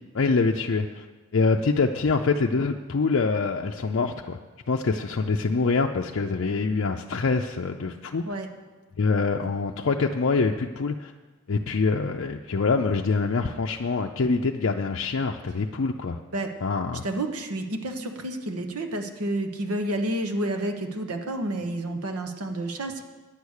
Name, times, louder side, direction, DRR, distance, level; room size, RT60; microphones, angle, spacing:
voice 1, 0.1-1.1 1.3-4.4 4.7-8.2 9.0-11.1 11.5-16.2 16.6-17.0, left 4 dB, 55° left, 2 dB, 0.5 m, -25 dB
voice 2, 17.0-23.0, right 1 dB, 85° right, 5 dB, 1.2 m, -30 dB
10.0 x 8.3 x 6.5 m, 1.3 s
head